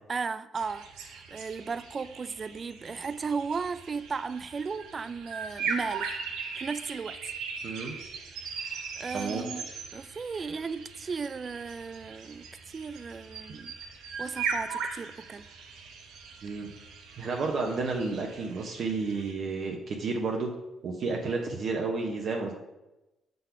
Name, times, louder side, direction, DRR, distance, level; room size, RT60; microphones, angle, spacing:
voice 1, 0.1-6.2 6.6-7.2 8.6-13.8 14.2-15.4, right 5 dB, 35° right, 14 dB, 0.4 m, -35 dB
sound 1, 0.5-19.3, right 5 dB, 90° right, 0.9 m, -39 dB
voice 2, 7.6-8.0 9.1-9.5 16.4-16.7 17.2-20.5 20.8-22.5, right 4 dB, 60° right, 0 dB, 0.9 m, -31 dB
6.4 x 3.9 x 5.7 m, 0.98 s
cardioid pair, 90°, 0 cm